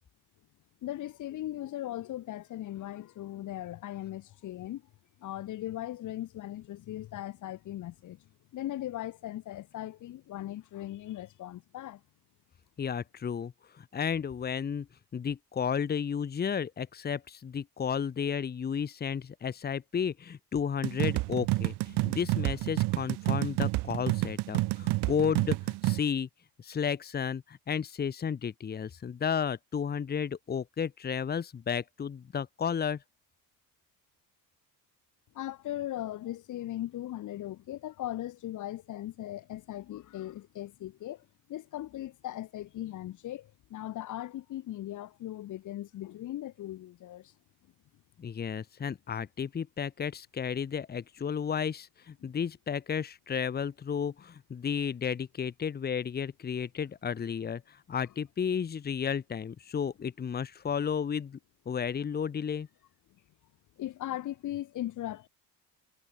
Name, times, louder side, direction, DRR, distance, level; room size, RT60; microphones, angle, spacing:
voice 1, 0.8-4.8 5.2-8.2 8.5-12.0 35.3-47.3 52.2-52.3 63.8-65.3, left 13 dB, 50° left, 3.0 m, -38 dB
voice 2, 12.8-14.9 15.1-26.3 26.6-33.0 48.2-61.4 61.7-62.7, left 7 dB, 25° left, 2.4 m, -33 dB
sound 1, 20.8-26.0, right 20 dB, 85° right, 3.0 m, -29 dB
cardioid pair, 180°, 39 cm